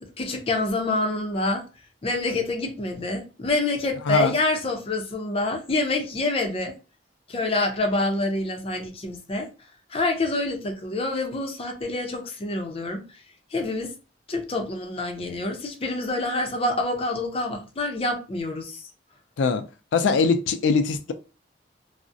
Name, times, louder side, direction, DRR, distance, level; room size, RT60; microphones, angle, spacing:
voice 1, 0.0-1.7 2.0-6.8 7.3-9.5 9.9-13.0 13.5-13.9 14.3-18.8, left 2 dB, 35° left, 0.5 m, -27 dB
voice 2, 19.9-21.1, left 4 dB, 90° left, 0.4 m, -21 dB
2.3 x 2.0 x 2.5 m
head